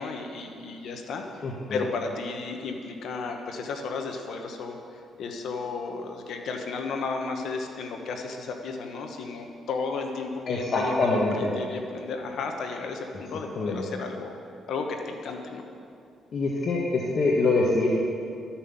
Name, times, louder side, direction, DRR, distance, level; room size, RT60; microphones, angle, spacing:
voice 1, 0.0-1.4 1.7-4.8 5.2-14.4 14.7-15.6, left 4 dB, 70° left, 4 dB, 1.2 m, -33 dB
voice 2, 1.4-1.8 10.5-11.5 13.6-13.8 16.3-17.9, left 3 dB, 50° left, -3 dB, 1.4 m, -24 dB
13.0 x 5.8 x 7.1 m, 2.5 s
cardioid pair, 90°, 0 cm